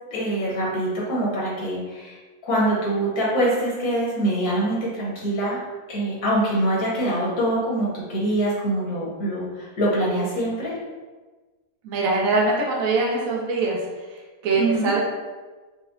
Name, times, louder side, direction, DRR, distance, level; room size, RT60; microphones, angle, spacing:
voice 1, 0.1-2.2 2.4-5.6 5.9-10.7 14.5-14.9, right 1 dB, 80° left, -6 dB, 1.6 m, -24 dB
voice 2, 11.8-13.8 14.1-15.0, right 3 dB, 70° right, -3 dB, 1.1 m, -23 dB
4.7 x 2.0 x 2.6 m, 1.3 s
omnidirectional pair, 1.6 m